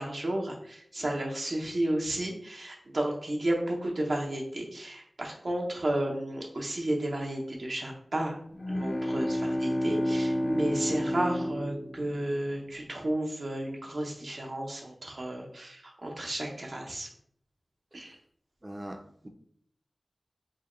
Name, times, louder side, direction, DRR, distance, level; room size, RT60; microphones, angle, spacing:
voice 1, 0.0-8.4 8.7-17.1 17.9-18.2, right 1 dB, 65° right, -1 dB, 0.7 m, -32 dB
sound 1, 8.5-12.6, equal, 50° left, 0.5 m, -30 dB
voice 2, 18.6-19.3, right 1 dB, 30° right, 6 dB, 0.5 m, -43 dB
4.6 x 2.2 x 3.0 m, 0.67 s
wide cardioid pair, 50°, 0 cm